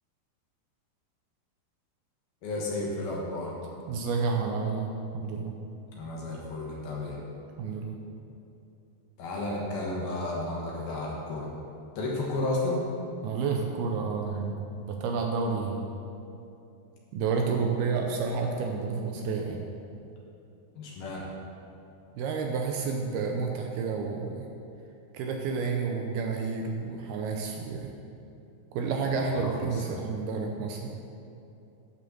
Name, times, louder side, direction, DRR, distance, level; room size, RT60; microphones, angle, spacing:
voice 1, 2.4-3.6 6.0-7.2 9.2-11.5 12.0-12.8 20.8-21.2 29.1-30.0, left 2 dB, 65° left, -3 dB, 2.9 m, -32 dB
voice 2, 3.9-5.5 7.6-8.0 13.2-15.8 17.1-19.7 22.2-24.5 25.1-27.9 28.7-30.9, right 5 dB, 80° right, 2 dB, 2.3 m, -30 dB
11.5 x 5.3 x 6.9 m, 2.8 s
omnidirectional pair, 5.1 m